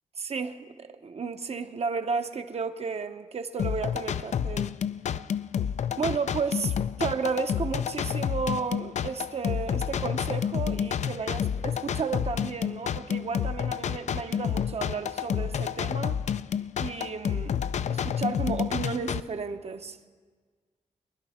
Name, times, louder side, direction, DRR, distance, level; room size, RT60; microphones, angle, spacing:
voice 1, 0.2-4.7 6.0-16.2 16.8-17.6 17.9-20.0, right 5 dB, 50° right, 0.8 m, -33 dB
sound 1, 3.6-19.2, left 8 dB, 60° left, 0.4 m, -29 dB
24.5 x 11.0 x 4.3 m
wide cardioid pair, 110°, 14 cm